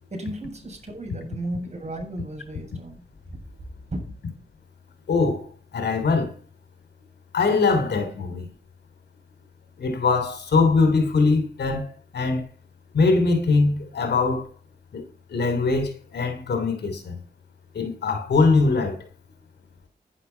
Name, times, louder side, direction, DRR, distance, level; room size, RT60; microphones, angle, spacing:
voice 1, 0.1-3.0 3.9-4.0, right 1 dB, 40° right, 7.5 m, -34 dB
voice 2, 5.1-6.3 7.3-8.5 9.8-12.4 12.9-14.5 14.9-15.0 15.3-17.2 17.7-19.0, left 3 dB, 85° left, 3.0 m, -22 dB
10.5 x 10.5 x 5.6 m
cardioid pair, 60°, 17 cm